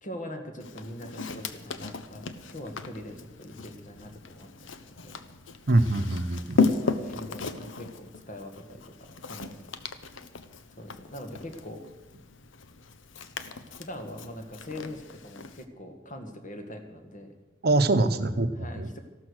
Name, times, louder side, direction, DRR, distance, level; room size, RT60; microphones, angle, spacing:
voice 1, 0.0-5.2 6.7-9.6 9.8-10.0 10.8-11.8 13.8-17.3 18.1-19.0, left 1 dB, 45° left, 5 dB, 1.9 m, -42 dB
Walk footsteps, 0.6-15.6, left 4 dB, 85° left, 0.9 m, -35 dB
voice 2, 5.7-6.7 17.6-18.9, right 2 dB, 55° right, 10 dB, 0.9 m, -24 dB
14.0 x 12.5 x 6.5 m, 1.1 s
head